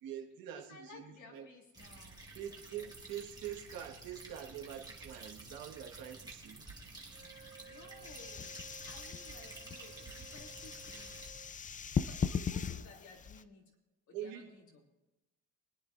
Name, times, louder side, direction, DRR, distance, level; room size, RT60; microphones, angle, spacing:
voice 1, 0.0-1.5 2.3-6.6 14.1-14.5, right 10 dB, 80° right, 1.8 m, -45 dB
voice 2, 0.5-2.3 6.6-11.3 11.8-13.7 14.1-14.9, left 3 dB, 55° left, 3.0 m, -57 dB
sound 1, 1.7-11.3, right 3 dB, 10° right, 2.0 m, -52 dB
Wind instrument woodwind instrument, 7.1-11.6, right 5 dB, 35° right, 1.1 m, -56 dB
sound 2, 8.0-13.4, left 6 dB, 25° left, 0.5 m, -39 dB
24.0 x 9.7 x 2.7 m
cardioid pair, 110°, 35 cm